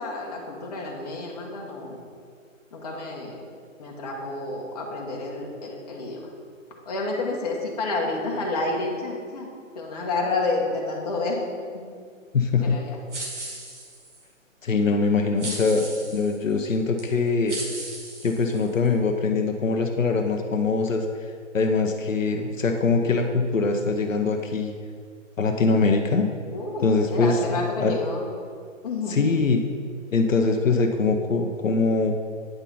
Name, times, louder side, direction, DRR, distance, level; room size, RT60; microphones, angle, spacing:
voice 1, 0.0-2.0 2.7-3.5 3.8-6.2 6.9-9.5 9.7-11.4 11.7-11.8 12.6-13.0 26.5-28.3 28.8-29.5, left 3 dB, 30° left, -2 dB, 1.3 m, -30 dB
voice 2, 12.3-12.7 14.6-17.6 18.2-21.0 21.5-24.7 25.4-26.3 26.8-27.9 29.1-29.6 30.1-32.1, left 4 dB, 75° left, 4 dB, 0.8 m, -23 dB
sound 1, 13.1-14.2 15.4-16.3 17.0-17.1 17.5-18.9, right 2 dB, 60° right, 2.1 m, -36 dB
9.0 x 5.4 x 4.1 m, 2.1 s
figure-of-eight pair, 150°, 40 cm